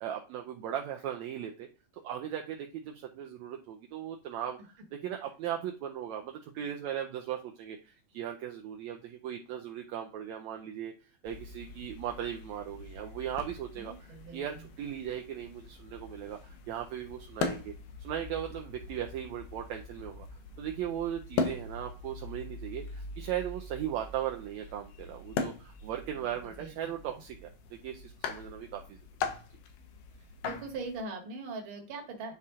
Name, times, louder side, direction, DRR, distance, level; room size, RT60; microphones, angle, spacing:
voice 1, 0.0-1.7 1.9-10.9 11.2-13.9 14.3-17.7 18.0-20.3 20.6-29.0, right 10 dB, 75° right, 2 dB, 1.7 m, -38 dB
sound 1, 11.3-31.0, left 5 dB, 80° left, 2.6 m, -41 dB
voice 2, 13.8-14.7 26.1-26.9 30.4-32.3, right 3 dB, 45° right, 2 dB, 2.0 m, -41 dB
9.6 x 4.1 x 3.6 m, 0.34 s
omnidirectional pair, 3.8 m